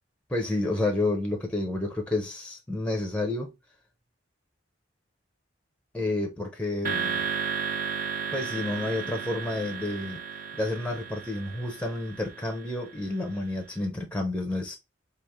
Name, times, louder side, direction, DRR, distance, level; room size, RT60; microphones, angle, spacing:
voice 1, 0.3-3.5 5.9-7.3 8.3-10.2 10.5-14.8, left 2 dB, 5° left, 0.6 m, -30 dB
sound 1, 6.8-13.2, right 7 dB, 45° right, 0.6 m, -34 dB
3.6 x 2.4 x 3.0 m
head